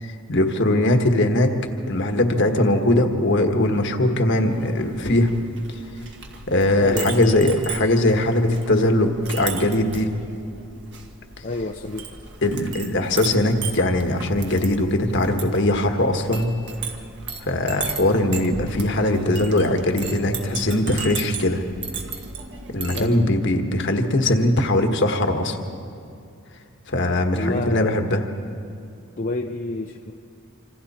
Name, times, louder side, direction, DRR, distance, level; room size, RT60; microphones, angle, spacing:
voice 1, 0.0-1.5 1.9-5.3 6.5-10.1 12.4-16.5 17.5-21.6 22.7-25.6 26.9-28.2, left 1 dB, 55° left, 5 dB, 1.5 m, -20 dB
Chink clink, 4.5-23.1, right 5 dB, 55° right, 1.7 m, -36 dB
voice 2, 6.8-7.3 8.3-8.4 11.4-12.1 22.9-23.2 27.3-28.2 29.2-30.1, left 2 dB, 40° left, 3 dB, 0.7 m, -28 dB
26.5 x 26.0 x 4.3 m, 2.4 s
head